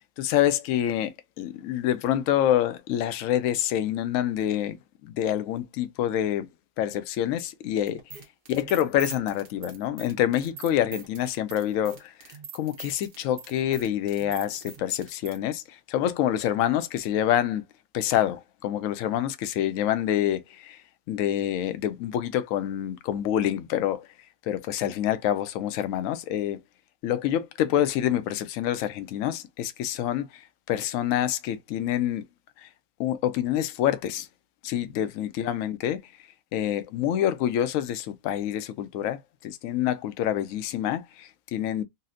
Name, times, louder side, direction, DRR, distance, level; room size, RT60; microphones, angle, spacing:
voice 1, 0.2-4.8 5.0-6.5 6.8-8.0 8.5-12.1 12.5-17.6 17.9-20.8 21.1-24.1 24.5-26.6 27.0-32.2 32.6-32.7 33.0-34.3 34.6-36.0 36.5-41.8, left 11 dB, 70° left, 0.7 m, -27 dB
sound 1, 7.9-15.4, right 5 dB, 70° right, 1.4 m, -43 dB
4.1 x 2.0 x 2.5 m
omnidirectional pair, 1.8 m